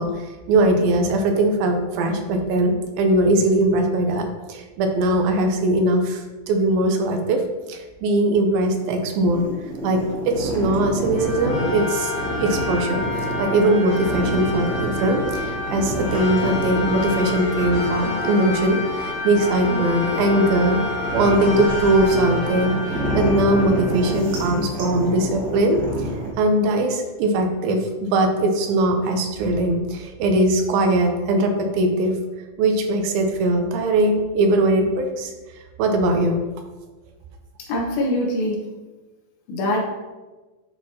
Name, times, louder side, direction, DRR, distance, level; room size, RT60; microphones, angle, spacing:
voice 1, 0.0-7.4 7.7-9.5 9.8-12.1 12.4-25.8 26.4-32.2 32.6-35.3 35.8-36.4, right 1 dB, 80° right, 4 dB, 2.6 m, -20 dB
sound 1, 8.6-26.3, right 1 dB, 45° right, 1.4 m, -29 dB
Khaen Symphony, 11.1-24.9, left 3 dB, 60° left, 2.3 m, -29 dB
voice 2, 37.7-38.7 39.5-39.8, left 1 dB, 80° left, -1 dB, 3.1 m, -23 dB
10.5 x 4.6 x 2.8 m, 1.2 s
omnidirectional pair, 4.2 m